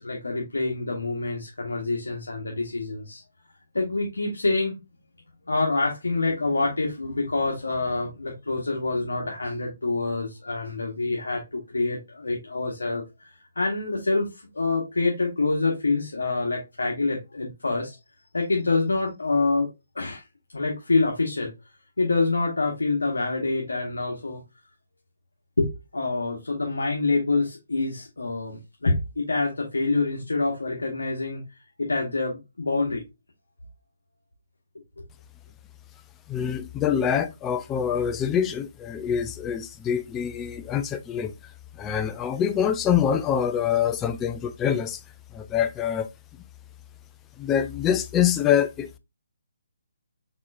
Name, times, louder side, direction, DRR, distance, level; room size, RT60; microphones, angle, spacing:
voice 1, 0.0-3.2 3.7-4.7 5.5-18.0 18.3-19.7 19.9-20.2 20.5-21.5 22.0-24.4 25.6-31.4 31.8-33.0, left 3 dB, 85° left, 1.2 m, -26 dB
voice 2, 36.3-41.3 41.8-45.0 45.3-46.1 47.4-49.0, left 8 dB, 15° left, 0.4 m, -25 dB
4.3 x 4.2 x 2.6 m
hypercardioid pair, 150°, 0 cm